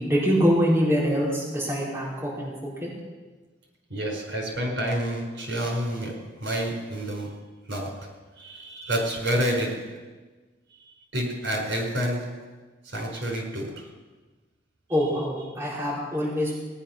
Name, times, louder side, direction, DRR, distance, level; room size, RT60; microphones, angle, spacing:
voice 1, 0.0-2.9 14.9-16.5, equal, 15° right, -8 dB, 4.3 m, -24 dB
voice 2, 3.9-10.1 10.8-12.5 12.8-13.9, equal, 70° right, 0 dB, 5.0 m, -29 dB
19.0 x 10.0 x 6.0 m, 1.3 s
head